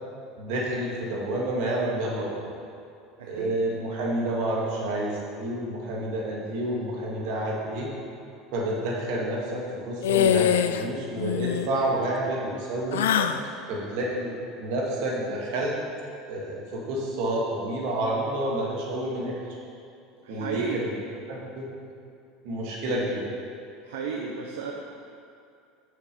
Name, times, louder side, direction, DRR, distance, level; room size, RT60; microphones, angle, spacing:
voice 1, 0.4-2.5 3.2-7.9 8.5-13.0 13.7-14.3 14.6-15.8 16.3-19.4 20.3-20.9 21.3-21.7 22.4-23.3, right 1 dB, 70° right, -3 dB, 1.9 m, -29 dB
voice 2, 3.2-3.6 12.8-13.6 20.2-20.9 23.8-24.7, right 5 dB, 85° right, 0 dB, 0.7 m, -33 dB
sound 1, 10.0-10.8 11.1-11.7 12.9-13.4, left 9 dB, 85° left, 0.3 m, -23 dB
6.7 x 5.9 x 5.4 m, 2.5 s
hypercardioid pair, 90°, 0 cm